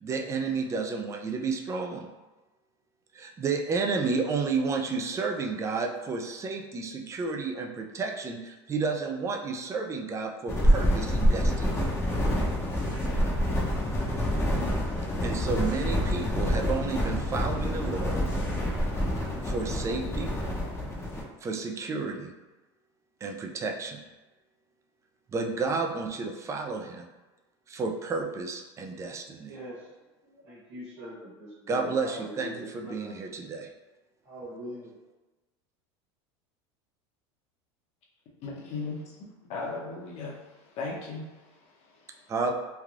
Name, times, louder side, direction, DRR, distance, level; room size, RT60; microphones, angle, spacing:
voice 1, 0.0-2.1 3.1-11.9 15.2-18.2 19.4-20.3 21.4-22.3 23.2-24.0 25.3-27.1 27.7-29.5 31.7-33.7 42.3-42.5, right 4 dB, 20° right, 0.3 m, -31 dB
sound 1, 10.5-21.2, equal, 20° left, 0.7 m, -27 dB
voice 2, 29.4-29.9 30.2-33.5 34.2-35.0, equal, 70° right, 1.2 m, -42 dB
voice 3, 38.4-39.2 39.5-42.3, left 3 dB, 50° left, 0.8 m, -38 dB
3.2 x 2.3 x 2.4 m
supercardioid pair, 110°, 14 cm